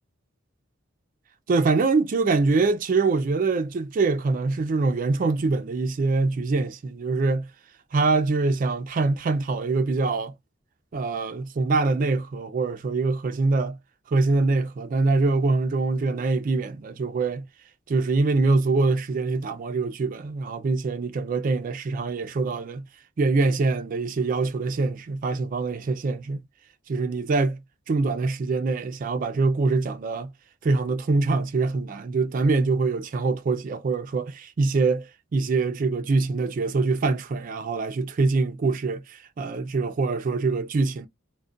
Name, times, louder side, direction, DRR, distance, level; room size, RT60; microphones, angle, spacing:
voice 1, 1.5-7.4 7.9-10.3 10.9-13.8 14.1-17.4 17.9-22.8 23.2-26.4 26.9-27.6 27.9-30.3 30.6-41.1, right 3 dB, 45° right, 0.3 m, -24 dB
2.4 x 2.1 x 2.5 m
head